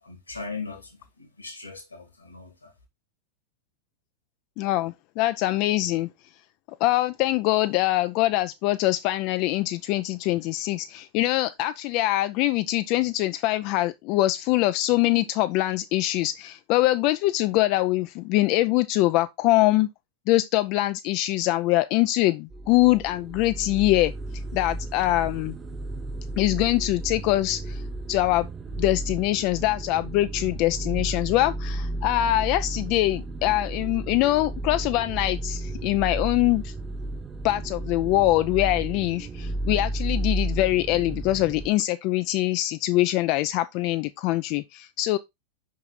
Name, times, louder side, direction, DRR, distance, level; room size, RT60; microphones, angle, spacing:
voice 1, 0.0-2.7, left 4 dB, 80° left, 2.3 m, -39 dB
voice 2, 4.6-6.1 6.8-19.9 20.3-24.1 24.5-25.6 26.4-27.8 28.1-28.5 28.8-36.7 37.4-45.2, left 16 dB, 45° left, 0.3 m, -23 dB
sound 1, 22.5-41.7, right 1 dB, 20° right, 0.5 m, -33 dB
5.7 x 4.6 x 4.0 m
figure-of-eight pair, 90°, 0 cm